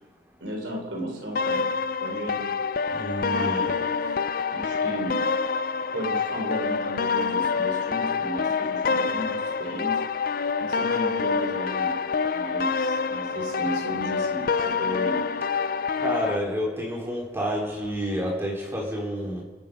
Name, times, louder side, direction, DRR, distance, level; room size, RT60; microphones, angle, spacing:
voice 1, 0.4-1.7 2.0-2.7 3.3-3.7 4.5-5.3 5.9-10.0 10.6-12.0 12.3-15.3, right 1 dB, 85° right, 2 dB, 3.9 m, -34 dB
sound 1, 1.4-16.4, left 5 dB, 50° left, 0.5 m, -26 dB
voice 2, 2.9-3.8 16.0-19.4, equal, 15° right, -2 dB, 3.5 m, -29 dB
27.0 x 9.1 x 5.3 m, 1.3 s
head